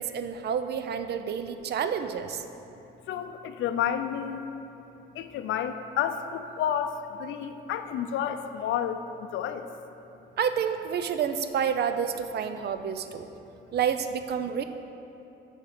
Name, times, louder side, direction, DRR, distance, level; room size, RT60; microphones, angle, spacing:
voice 1, 0.0-2.4 10.4-13.3 13.7-14.6, right 7 dB, 55° right, 9 dB, 0.5 m, -29 dB
voice 2, 3.1-4.4 5.1-9.7, left 9 dB, 75° left, 9 dB, 0.4 m, -30 dB
6.6 x 6.6 x 4.1 m, 2.9 s
cardioid pair, 90°, 20 cm